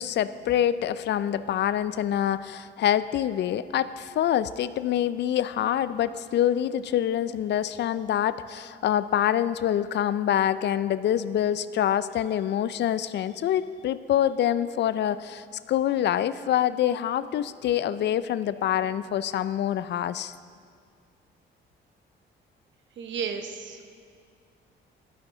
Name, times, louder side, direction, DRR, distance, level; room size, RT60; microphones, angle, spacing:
voice 1, 0.0-20.3, left 10 dB, 60° left, 15 dB, 0.4 m, -26 dB
voice 2, 23.0-23.8, right 6 dB, 70° right, 6 dB, 1.1 m, -33 dB
13.5 x 11.0 x 3.8 m, 2.1 s
cardioid pair, 90°, 20 cm